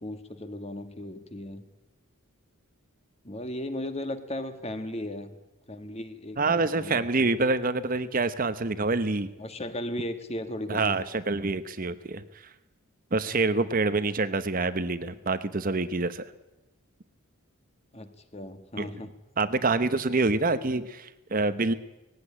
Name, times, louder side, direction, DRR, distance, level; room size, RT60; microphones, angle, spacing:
voice 1, 0.0-1.6 3.2-5.3 5.7-7.3 9.4-11.0 17.9-19.1, left 1 dB, 30° left, 9 dB, 1.7 m, -36 dB
voice 2, 6.4-9.3 10.7-12.2 13.1-16.2 18.8-18.9 19.4-21.7, right 3 dB, 40° right, 12 dB, 0.9 m, -26 dB
19.0 x 16.5 x 9.9 m, 1.0 s
head